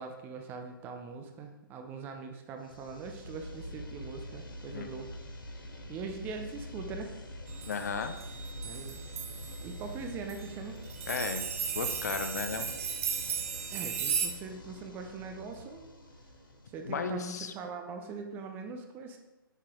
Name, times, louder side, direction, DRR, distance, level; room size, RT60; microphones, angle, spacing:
voice 1, 0.0-5.1 5.9-7.1 8.6-9.0 9.6-10.8 13.7-15.9 16.7-19.2, right 4 dB, 15° right, 5 dB, 0.6 m, -42 dB
sound 1, 2.6-17.4, equal, 65° left, 1.5 m, -45 dB
sound 2, 7.5-9.6 10.3-10.5 10.9-14.3, right 7 dB, 40° right, 0.9 m, -35 dB
voice 2, 7.7-8.1 11.1-11.4 11.7-12.7 16.9-17.5, left 5 dB, 45° left, 8 dB, 0.7 m, -34 dB
9.2 x 5.7 x 3.7 m, 1.0 s
figure-of-eight pair, 130°, 12 cm